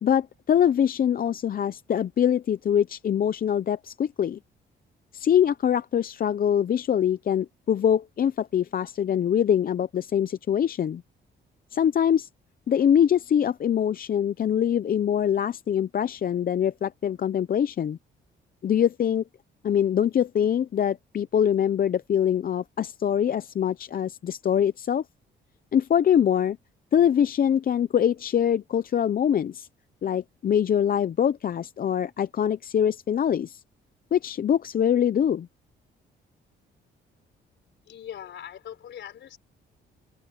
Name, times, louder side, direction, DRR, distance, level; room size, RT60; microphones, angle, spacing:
voice 1, 0.0-4.4 5.1-11.0 11.7-12.3 12.7-18.0 18.6-19.2 19.6-25.0 25.7-26.6 26.9-29.7 30.0-33.6 34.1-35.5, left 9 dB, 45° left, 0.7 m, -23 dB
voice 2, 37.9-39.4, left 10 dB, 65° left, 4.5 m, -41 dB
cardioid pair, 90°, 20 cm